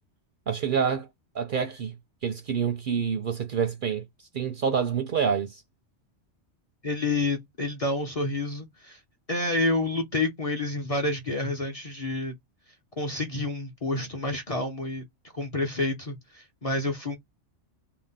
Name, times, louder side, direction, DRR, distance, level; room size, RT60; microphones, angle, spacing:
voice 1, 0.5-1.1 1.3-1.9 2.2-4.0 4.3-5.6, right 7 dB, 60° right, 0.6 m, -27 dB
voice 2, 6.8-9.0 9.3-12.3 13.0-15.0 15.3-17.2, left 2 dB, 40° left, 0.5 m, -29 dB
2.6 x 2.1 x 3.5 m
omnidirectional pair, 1.2 m